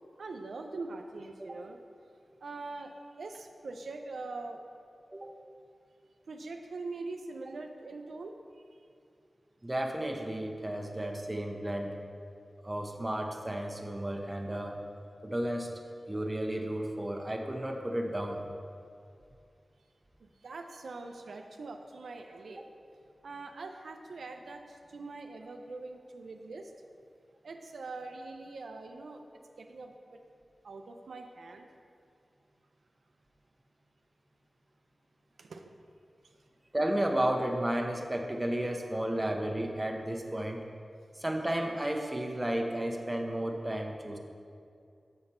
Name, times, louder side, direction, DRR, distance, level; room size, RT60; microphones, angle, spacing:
voice 1, 0.2-1.8 2.4-4.6 6.3-8.3 19.8-19.9 20.2-22.6 23.2-26.7 27.4-29.2 29.6-29.9 30.6-31.7 35.4-35.7 39.1-39.2, right 3 dB, 85° right, 4 dB, 0.4 m, -43 dB
voice 2, 9.6-12.0 12.6-14.8 15.2-15.7 16.1-18.4 22.6-22.7 36.7-40.6 41.2-44.2, right 1 dB, 20° right, 3 dB, 0.8 m, -33 dB
6.6 x 5.8 x 4.3 m, 2.4 s
cardioid pair, 50°, 0 cm